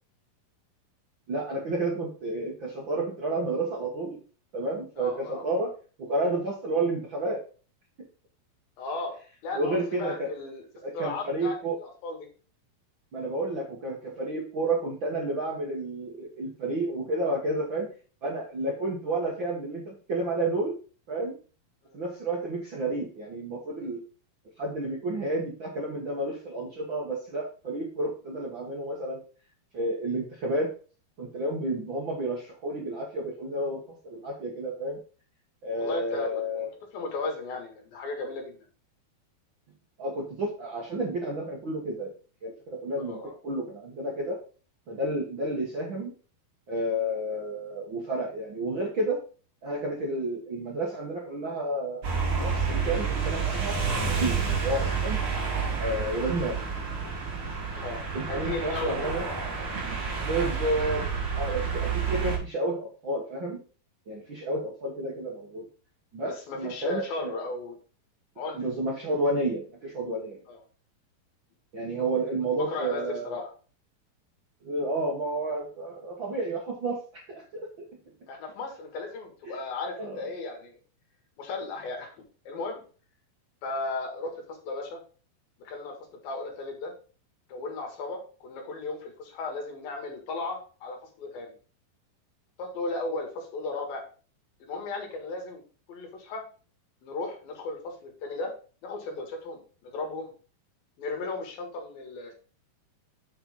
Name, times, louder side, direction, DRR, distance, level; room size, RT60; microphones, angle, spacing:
voice 1, 1.3-4.2 4.5-5.7 6.0-7.4 9.5-10.3 10.8-11.8 13.1-17.9 18.2-20.7 21.1-21.4 21.9-24.0 24.6-29.2 29.7-30.7 31.2-35.0 35.6-36.7 40.0-42.1 42.4-44.4 44.9-46.1 46.7-49.2 49.6-52.0 52.4-53.8 54.2-55.2 55.8-56.6 58.1-59.3 60.2-61.0 61.3-63.6 64.1-65.7 66.1-67.3 68.6-70.4 71.7-73.4 74.6-77.7 79.5-79.6 80.0-80.2, right 2 dB, 60° right, -2 dB, 1.2 m, -31 dB
voice 2, 5.0-5.4 8.8-9.2 9.4-10.6 10.9-12.3 21.9-22.0 35.7-38.6 43.0-43.4 57.8-58.0 58.3-59.3 66.2-67.8 68.4-68.6 70.5-70.6 72.7-73.5 78.3-80.8 81.4-82.1 82.5-82.8 83.6-85.0 85.6-85.9 86.2-86.9 87.5-91.5 92.6-94.0 94.6-95.6 95.9-96.4 97.0-98.5 98.8-100.3 101.0-102.3, left 3 dB, 70° left, 3 dB, 3.5 m, -35 dB
sound 1, 52.0-62.4, right 5 dB, 40° right, 3.1 m, -29 dB
7.9 x 4.4 x 5.2 m, 0.37 s
omnidirectional pair, 4.4 m